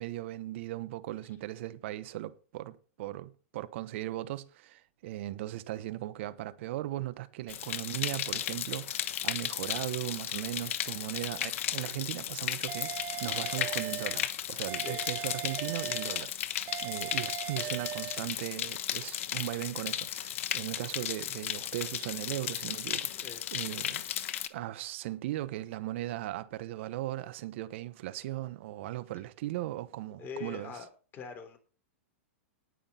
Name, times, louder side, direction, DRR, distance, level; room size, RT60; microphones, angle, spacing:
voice 1, 0.0-12.9 13.2-24.0 24.5-30.7, right 15 dB, 60° right, 1.1 m, -38 dB
sound 1, 7.5-24.5, left 11 dB, 70° left, 1.1 m, -35 dB
sound 2, 12.7-14.3 14.7-16.3 16.7-18.3, right 13 dB, 30° right, 0.7 m, -39 dB
voice 2, 30.2-31.6, left 6 dB, 30° left, 3.5 m, -43 dB
19.0 x 6.3 x 4.3 m
hypercardioid pair, 130°, 7 cm